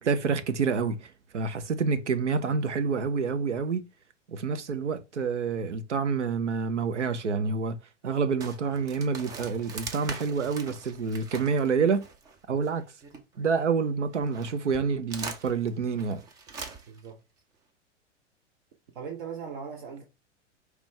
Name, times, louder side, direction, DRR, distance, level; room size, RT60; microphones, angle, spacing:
voice 1, 0.0-3.8 4.3-7.8 8.0-12.0 12.5-12.8 13.4-16.2, right 5 dB, 70° right, 0.8 m, -28 dB
sound 1, 8.4-13.6 14.1-17.1, right 4 dB, 10° right, 0.4 m, -42 dB
voice 2, 16.9-17.2 18.9-20.0, right 6 dB, 45° right, 0.9 m, -39 dB
5.1 x 3.2 x 3.2 m
figure-of-eight pair, 100°, 37 cm